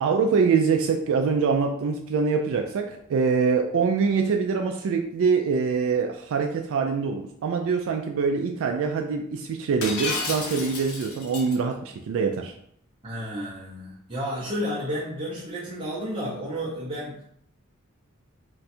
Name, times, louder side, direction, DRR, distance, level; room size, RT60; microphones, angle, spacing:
voice 1, 0.0-12.5, right 5 dB, 65° right, 3 dB, 0.3 m, -24 dB
Shatter, 9.8-11.6, left 3 dB, 75° left, 0.8 m, -31 dB
voice 2, 13.0-17.2, equal, 25° right, -6 dB, 0.6 m, -32 dB
2.6 x 2.3 x 4.1 m, 0.70 s
head